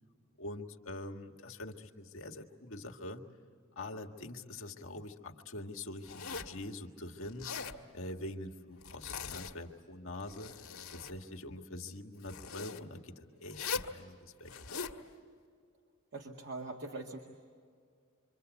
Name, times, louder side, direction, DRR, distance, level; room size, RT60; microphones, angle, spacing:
voice 1, 0.4-3.2 3.8-7.5 7.9-10.5 10.9-14.5, left 2 dB, 65° left, 2 dB, 1.8 m, -44 dB
Zipper (clothing), 6.0-6.6 7.3-7.8 8.8-9.7 10.1-11.2 12.2-12.8 13.5-13.9 14.5-15.0, left 5 dB, 80° left, 1.6 m, -41 dB
voice 2, 16.1-17.2, right 2 dB, 60° right, 1 dB, 2.0 m, -42 dB
28.0 x 25.5 x 8.3 m, 2.1 s
head